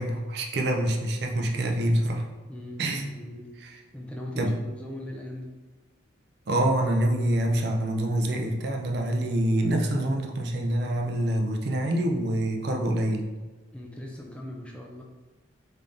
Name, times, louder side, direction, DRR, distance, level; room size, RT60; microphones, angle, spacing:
voice 1, 0.0-2.2 2.8-3.0 3.6-3.7 4.4-4.5 6.5-13.3, right 1 dB, 55° right, 2 dB, 0.5 m, -26 dB
voice 2, 2.5-5.5 13.7-15.0, left 1 dB, 5° left, -1 dB, 0.3 m, -40 dB
3.5 x 3.2 x 2.6 m, 1.3 s
head